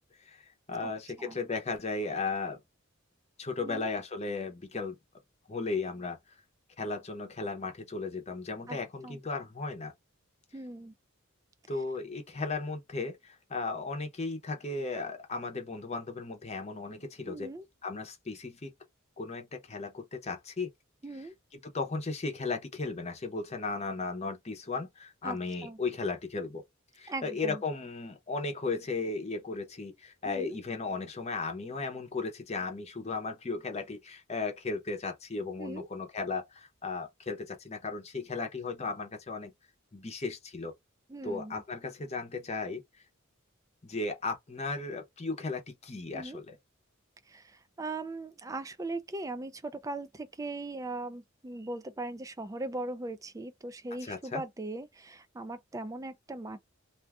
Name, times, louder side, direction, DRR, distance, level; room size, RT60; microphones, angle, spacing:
voice 1, 0.2-2.6 3.4-5.0 5.5-6.2 6.8-9.9 11.7-17.5 17.8-18.7 19.2-20.7 21.1-26.6 27.0-39.5 39.9-40.7 41.2-42.8 43.8-46.6 54.0-54.4, left 3 dB, 30° left, 0.7 m, -36 dB
voice 2, 10.5-10.9 17.3-17.6 21.0-21.3 25.2-25.8 27.1-27.6 30.2-30.6 35.6-35.9 41.1-41.6 46.1-46.4 47.3-56.6, right 2 dB, 15° right, 0.3 m, -39 dB
2.5 x 2.4 x 3.4 m
head